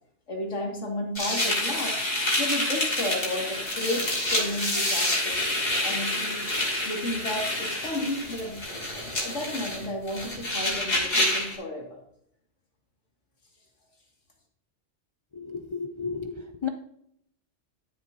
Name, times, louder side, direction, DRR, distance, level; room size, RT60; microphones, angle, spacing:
voice 1, 0.3-2.0 2.4-5.4 5.8-6.5 6.9-8.7 8.9-12.0, left 1 dB, 90° left, -1 dB, 2.3 m, -33 dB
sound 1, 1.1-11.5, left 1 dB, 75° left, 3.1 m, -28 dB
voice 2, 15.3-16.7, left 5 dB, 40° left, 4 dB, 0.4 m, -33 dB
12.5 x 7.7 x 2.7 m, 0.71 s
omnidirectional pair, 1.2 m